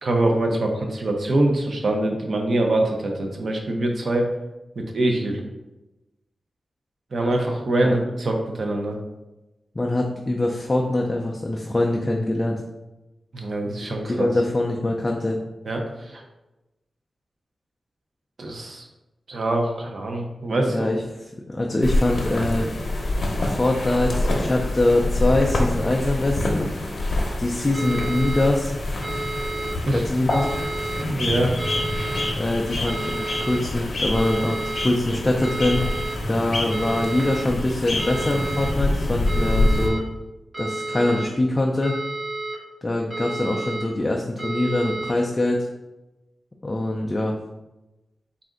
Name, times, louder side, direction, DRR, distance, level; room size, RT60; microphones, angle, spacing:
voice 1, 0.0-4.3 4.8-5.4 7.1-9.0 13.3-14.3 15.7-16.2 18.4-18.8 19.3-20.9 29.9-30.0 31.0-31.5, right 1 dB, 55° right, 2 dB, 0.7 m, -24 dB
voice 2, 9.8-12.6 14.0-15.4 20.7-22.7 23.4-26.7 27.4-28.7 29.9-30.5 32.4-35.8 36.3-40.0 40.6-42.0 42.8-45.7 46.6-47.4, left 2 dB, 20° left, 0 dB, 0.3 m, -23 dB
sound 1, 21.8-39.9, left 1 dB, 55° left, 0.7 m, -26 dB
sound 2, 27.7-28.5 29.0-29.7 30.3-31.0 31.6-32.3 32.9-33.6 34.1-34.9 35.4-36.2 36.7-37.4 38.0-38.7 39.3-40.0 40.5-41.3 41.8-42.6 43.1-43.8 44.4-45.1, right 2 dB, 25° right, 1.4 m, -31 dB
4.1 x 2.5 x 3.7 m, 1.0 s
wide cardioid pair, 130°, 0 cm